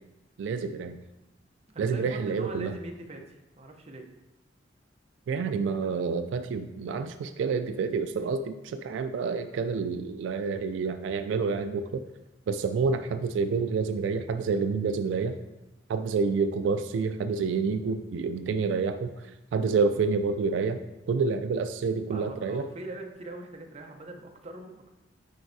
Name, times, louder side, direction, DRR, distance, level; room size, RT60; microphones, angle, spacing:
voice 1, 0.4-1.0 1.8-2.7 5.3-12.0 12.5-15.4 15.9-19.1 19.5-20.8 21.1-22.7, right 5 dB, 85° right, 9 dB, 0.3 m, -28 dB
voice 2, 1.7-4.1 22.1-24.9, right 2 dB, 35° right, 3 dB, 0.7 m, -42 dB
9.2 x 4.3 x 2.7 m, 0.98 s
head